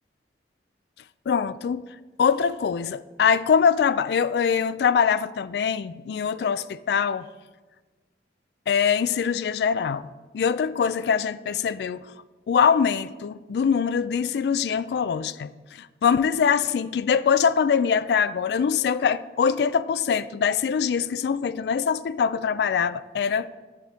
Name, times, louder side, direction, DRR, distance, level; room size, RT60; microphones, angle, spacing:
voice 1, 1.3-1.8 2.2-7.3 8.7-10.1 10.3-12.1 12.5-15.5 15.8-23.5, left 6 dB, 65° left, 0.3 m, -23 dB
11.0 x 5.9 x 3.5 m
head